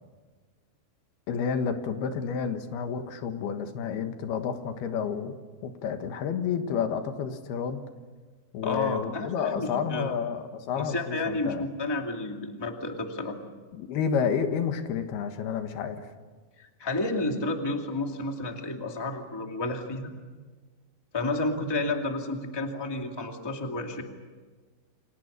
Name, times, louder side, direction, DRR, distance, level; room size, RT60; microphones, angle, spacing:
voice 1, 1.3-5.3 5.6-7.8 8.5-11.7 13.7-16.1, left 7 dB, 85° left, 7 dB, 3.6 m, -30 dB
voice 2, 8.6-10.2 10.8-13.4 16.6-20.1 21.1-24.0, left 2 dB, 10° left, 3 dB, 1.5 m, -31 dB
29.5 x 26.0 x 6.8 m, 1.4 s
omnidirectional pair, 4.4 m